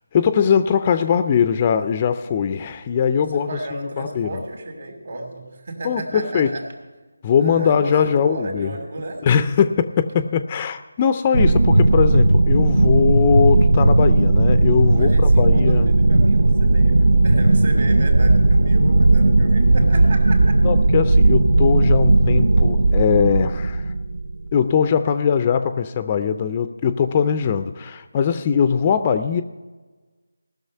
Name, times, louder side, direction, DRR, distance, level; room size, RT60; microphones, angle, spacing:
voice 1, 0.1-4.4 5.8-6.5 7.2-8.7 9.2-15.9 20.6-23.9 24.5-29.4, left 7 dB, 20° left, 10 dB, 0.4 m, -20 dB
voice 2, 3.1-6.7 7.4-9.3 14.9-20.6, right 2 dB, 55° right, 3 dB, 2.8 m, -33 dB
sound 1, 11.3-24.6, right 2 dB, 75° right, 0.6 m, -16 dB
18.5 x 6.4 x 5.4 m, 1.3 s
figure-of-eight pair, 165°, 0 cm